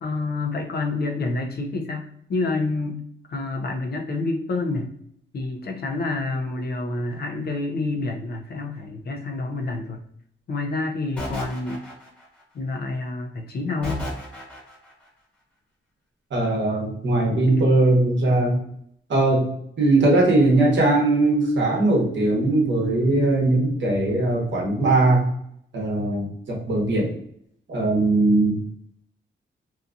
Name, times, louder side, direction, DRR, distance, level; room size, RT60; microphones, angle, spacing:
voice 1, 0.0-3.0 3.3-4.9 5.3-10.0 10.5-11.8 12.5-14.0 17.2-17.6, left 3 dB, 50° left, 2 dB, 0.5 m, -28 dB
sound 1, 11.2-12.4 13.8-14.9, equal, 5° left, 1.0 m, -33 dB
voice 2, 16.3-18.6 19.1-19.5 19.8-25.3 25.7-27.1 27.7-28.6, right 2 dB, 65° right, -2 dB, 0.9 m, -20 dB
2.7 x 2.3 x 2.5 m, 0.71 s
wide cardioid pair, 125°, 21 cm